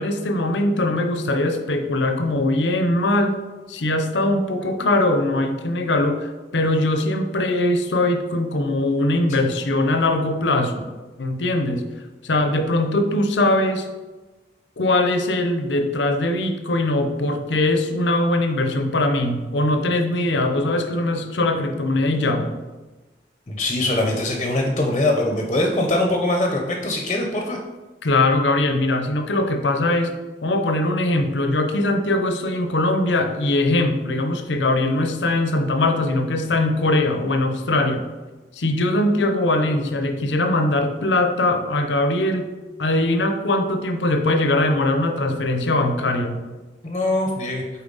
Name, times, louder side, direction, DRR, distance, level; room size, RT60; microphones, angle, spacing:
voice 1, 0.0-3.4 3.7-6.3 6.5-10.9 11.2-11.9 12.2-13.9 14.8-22.6 28.0-30.2 30.4-38.0 38.6-42.5 42.8-46.5, left 2 dB, 85° left, 6 dB, 0.7 m, -21 dB
voice 2, 23.5-27.6 46.8-47.6, left 1 dB, 35° left, 1 dB, 0.7 m, -22 dB
7.1 x 4.4 x 4.0 m, 1.2 s
head